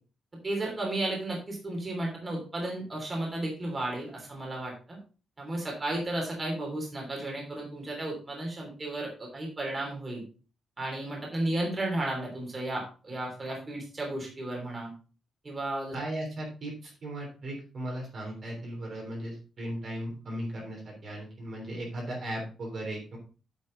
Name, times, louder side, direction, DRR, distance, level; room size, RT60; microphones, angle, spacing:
voice 1, 0.4-5.0 5.4-10.2 10.8-14.9 15.4-15.9, right 1 dB, 20° right, -1 dB, 3.3 m, -33 dB
voice 2, 15.9-23.2, right 1 dB, 40° right, -1 dB, 3.3 m, -37 dB
8.7 x 7.5 x 3.9 m, 0.36 s
wide cardioid pair, 175°, 0 cm